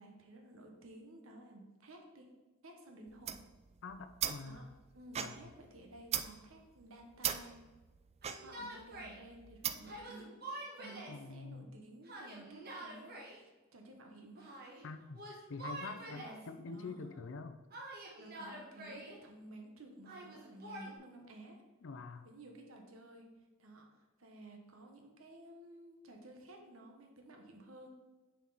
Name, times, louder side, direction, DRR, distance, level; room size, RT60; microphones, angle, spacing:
voice 1, 0.0-2.3 2.6-3.4 4.4-4.6 4.9-7.6 8.4-14.5 15.9-16.4 16.7-17.2 18.2-21.6 22.2-23.3 23.6-27.9, right 1 dB, 80° right, 3 dB, 1.1 m, -54 dB
sound 1, 3.1-10.1, right 9 dB, 30° right, 0.3 m, -41 dB
voice 2, 3.8-4.7 5.2-5.5 11.1-11.7 14.8-15.2 15.5-17.6 21.8-22.3, left 4 dB, 65° left, 9 dB, 0.5 m, -46 dB
Yell, 8.2-9.2 9.8-11.2 12.0-13.4 14.4-14.8 15.1-16.5 17.7-19.2 20.1-20.9, right 1 dB, 50° right, 1.3 m, -47 dB
7.1 x 4.6 x 4.0 m, 1.2 s
head